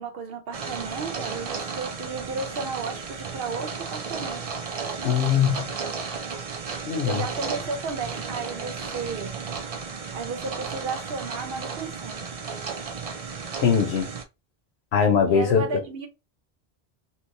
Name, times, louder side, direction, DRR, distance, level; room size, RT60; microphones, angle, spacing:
voice 1, 0.0-4.5 7.0-9.4 10.1-12.3 15.3-16.1, right 4 dB, 65° right, 1.0 m, -33 dB
sound 1, 0.5-14.2, right 5 dB, 45° right, 0.5 m, -34 dB
voice 2, 5.0-5.7 6.9-7.2 13.6-14.1 14.9-15.7, left 7 dB, 80° left, 1.0 m, -21 dB
3.1 x 2.9 x 2.6 m
omnidirectional pair, 1.1 m